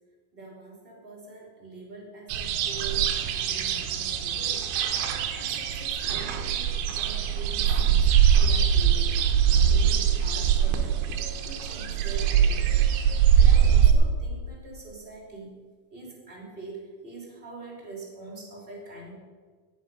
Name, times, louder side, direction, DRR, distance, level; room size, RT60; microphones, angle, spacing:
voice 1, 0.3-4.7 5.3-9.2 9.5-11.0 11.4-15.6 15.9-19.1, right 3 dB, 15° right, -2 dB, 2.2 m, -44 dB
sound 1, 2.3-13.9, right 8 dB, 80° right, 3.3 m, -22 dB
17.5 x 7.6 x 5.3 m, 1.5 s
omnidirectional pair, 5.4 m